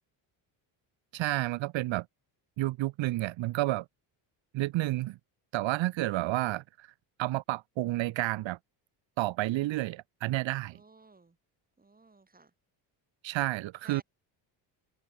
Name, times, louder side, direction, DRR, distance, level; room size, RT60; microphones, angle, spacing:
voice 1, 1.1-2.1 2.6-3.8 4.5-5.2 5.5-6.9 7.2-8.6 9.2-10.8 13.2-14.0, right 17 dB, 70° right, 1.8 m, -30 dB
voice 2, 10.7-11.4 11.8-12.5 13.8-14.0, right 3 dB, 20° right, 7.9 m, -55 dB
cardioid pair, 100°, 46 cm